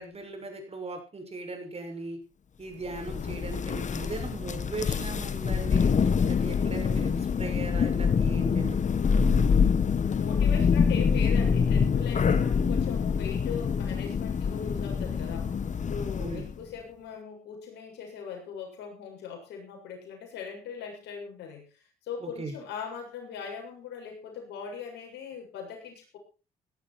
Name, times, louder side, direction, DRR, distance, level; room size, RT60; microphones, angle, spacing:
voice 1, 0.0-2.2 2.6-8.8 16.2-16.4 22.2-22.5, right 3 dB, 35° right, 5 dB, 6.5 m, -38 dB
Thunder, 2.9-16.6, left 6 dB, 45° left, 1.5 m, -25 dB
voice 2, 10.2-15.6 15.9-26.2, left 6 dB, 75° left, 1 dB, 7.2 m, -40 dB
18.5 x 11.5 x 4.5 m, 0.35 s
supercardioid pair, 65°, 17 cm